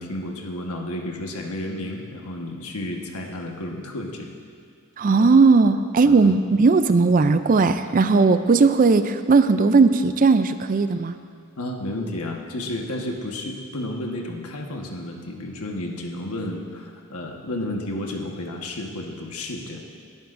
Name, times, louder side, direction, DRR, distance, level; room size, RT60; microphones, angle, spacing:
voice 1, 0.0-4.3 6.0-6.3 11.6-19.8, left 1 dB, 85° left, 1 dB, 1.4 m, -32 dB
voice 2, 5.0-11.1, right 4 dB, 40° right, 11 dB, 0.4 m, -17 dB
19.5 x 11.5 x 2.6 m, 2.2 s
head